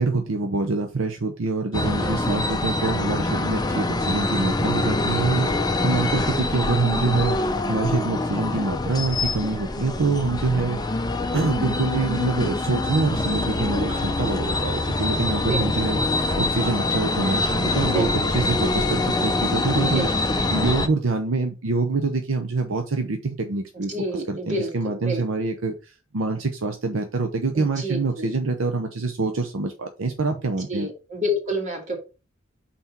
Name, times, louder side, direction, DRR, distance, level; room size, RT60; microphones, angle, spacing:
voice 1, 0.0-7.4 7.7-10.8 11.3-20.1 20.5-30.9, right 3 dB, 70° right, 5 dB, 0.7 m, -25 dB
sound 1, 1.7-20.9, left 2 dB, 20° left, 0.6 m, -25 dB
voice 2, 2.0-2.5 5.1-5.6 13.9-14.2 15.3-15.9 17.8-18.5 19.8-20.1 23.9-25.2 27.5-28.3 30.7-32.0, equal, 40° right, 1 dB, 2.3 m, -30 dB
5.8 x 4.3 x 4.4 m, 0.31 s
head